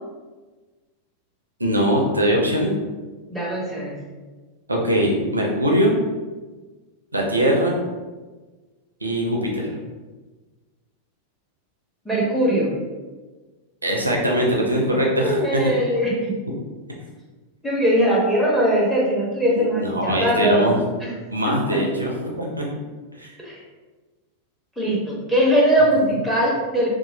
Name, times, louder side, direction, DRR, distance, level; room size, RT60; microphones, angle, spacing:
voice 1, 1.6-2.7 4.7-5.9 7.1-7.8 9.0-9.8 13.8-15.6 19.8-20.8 21.3-22.6 23.2-23.3 26.0-26.1, equal, 80° right, -1 dB, 0.4 m, -21 dB
voice 2, 3.3-4.0 12.0-12.7 15.0-16.3 17.6-20.7 21.0-21.1 21.4-21.8 23.4-23.5 24.8-26.9, right 1 dB, ahead, -5 dB, 1.0 m, -21 dB
2.9 x 2.3 x 2.6 m, 1.3 s
figure-of-eight pair, 90°, 0 cm